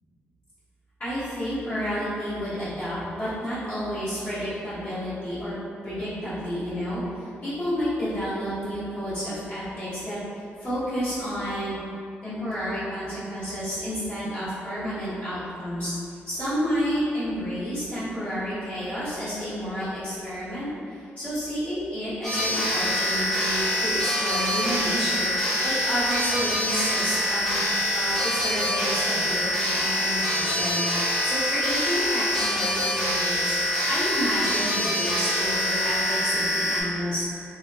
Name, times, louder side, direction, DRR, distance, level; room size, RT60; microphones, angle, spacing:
voice 1, 1.0-5.5 5.8-11.8 12.2-15.9 16.3-25.3 25.6-27.6 27.9-30.8 31.2-33.6 33.8-37.2, equal, 40° left, -15 dB, 1.2 m, -30 dB
sound 1, 22.2-36.8, equal, 10° left, 0.7 m, -25 dB
3.2 x 2.8 x 2.4 m, 2.5 s
wide cardioid pair, 160°, 4 cm